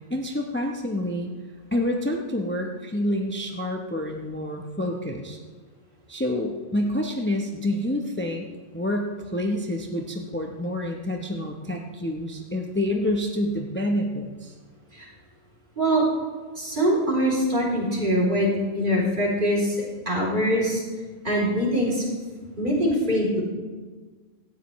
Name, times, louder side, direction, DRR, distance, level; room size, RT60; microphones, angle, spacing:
voice 1, 0.1-1.3 1.7-5.4 6.1-8.5 8.7-14.5, left 1 dB, 10° left, 2 dB, 0.9 m, -28 dB
voice 2, 16.5-20.8 21.2-22.1 22.6-23.4, equal, 45° right, -4 dB, 3.3 m, -23 dB
17.0 x 13.5 x 3.1 m, 1.4 s
omnidirectional pair, 1.1 m